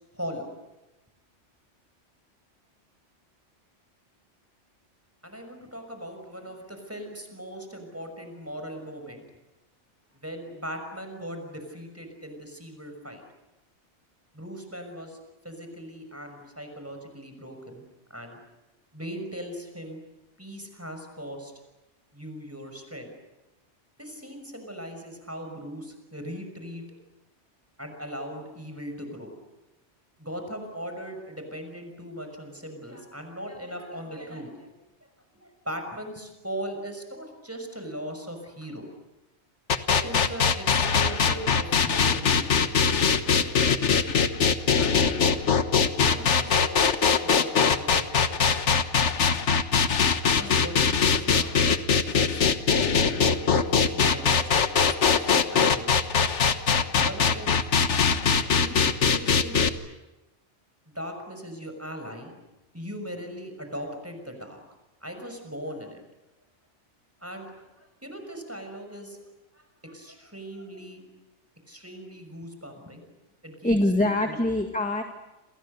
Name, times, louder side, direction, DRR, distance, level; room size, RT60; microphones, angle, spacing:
voice 1, 0.1-0.6 5.2-9.2 10.1-13.2 14.3-15.2 15.4-17.8 18.1-18.4 18.9-20.0 20.4-21.5 22.1-23.1 24.0-26.8 27.8-29.3 30.2-34.7 35.3-38.9 39.9-43.4 44.8-45.3 46.0-48.4 50.2-56.0 57.0-57.6 58.5-59.6 60.9-62.4 62.7-64.6 65.0-66.0 67.2-69.2 69.5-71.0 71.7-73.0 73.4-73.8 74.2-74.4, equal, 10° right, 5 dB, 5.9 m, -39 dB
sound 1, 39.7-59.7, left 6 dB, 75° left, 1.6 m, -22 dB
voice 2, 73.6-75.0, left 1 dB, 5° left, 4 dB, 1.9 m, -24 dB
29.0 x 28.0 x 6.7 m, 1.0 s
omnidirectional pair, 1.2 m